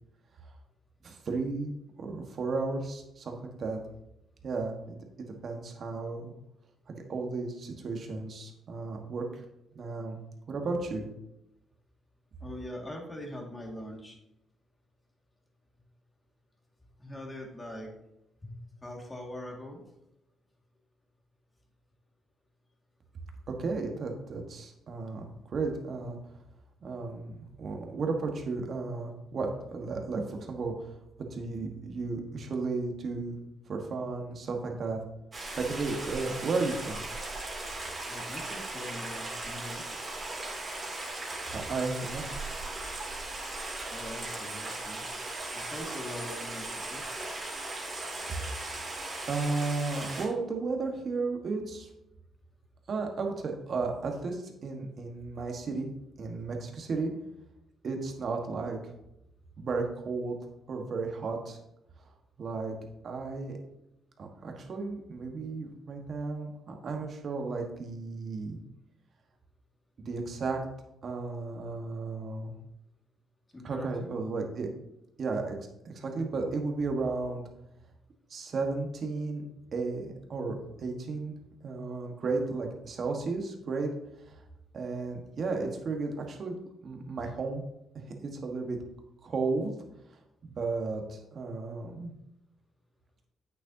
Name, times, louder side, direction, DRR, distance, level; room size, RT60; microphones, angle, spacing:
voice 1, 1.0-3.8 4.4-6.3 6.9-9.4 9.7-10.2 10.5-11.1 23.6-26.2 26.8-30.7 31.2-33.4 33.7-35.0 35.6-37.0 41.5-42.3 49.3-51.9 52.9-55.9 56.2-57.1 57.8-58.8 59.6-60.4 60.7-61.6 62.4-62.7 63.0-63.6 64.2-68.6 70.0-70.6 71.0-72.5 73.6-74.7 75.2-75.6 75.8-77.4 78.3-79.4 79.7-81.3 81.6-83.9 84.7-86.5 86.8-87.6 87.9-88.8 89.2-89.7 90.4-92.1, right 3 dB, 50° right, 2 dB, 1.4 m, -34 dB
voice 2, 12.4-14.2 17.0-17.9 18.4-18.5 18.8-19.8 38.1-39.8 43.9-45.1 45.5-47.0 73.5-74.1, left 1 dB, 20° left, 0 dB, 2.0 m, -42 dB
Stream, 35.3-50.3, right 2 dB, 30° right, 2.6 m, -38 dB
8.4 x 6.6 x 2.8 m, 0.85 s
cardioid pair, 90°, 0 cm